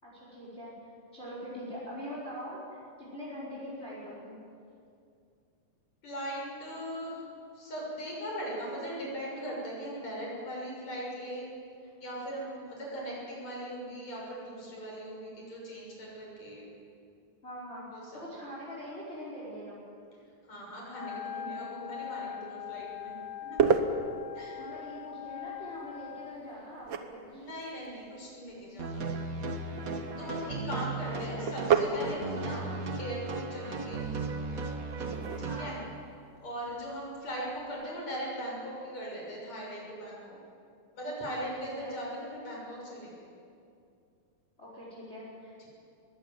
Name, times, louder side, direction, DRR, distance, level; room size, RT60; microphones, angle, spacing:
voice 1, 0.0-0.7 1.1-4.3 17.4-17.8 18.1-19.8 24.5-27.5 30.9-31.6 32.4-32.7 35.4-35.7 41.6-42.0 44.6-45.7, equal, 15° left, -6 dB, 5.1 m, -43 dB
voice 2, 6.0-7.2 7.5-11.5 11.8-16.6 17.9-18.2 20.4-23.7 24.3-24.6 27.3-29.1 30.2-32.6 33.0-34.0 35.4-35.8 36.4-40.4 41.0-43.3 45.6-45.7, equal, 50° left, -3 dB, 7.9 m, -39 dB
Wind instrument woodwind instrument, 20.9-26.5, left 11 dB, 70° left, 2.2 m, -42 dB
sound 1, 22.7-37.9, right 6 dB, 90° right, 1.0 m, -35 dB
sound 2, 28.8-35.6, right 3 dB, 65° right, 0.8 m, -36 dB
21.5 x 16.5 x 9.3 m, 2.4 s
omnidirectional pair, 3.9 m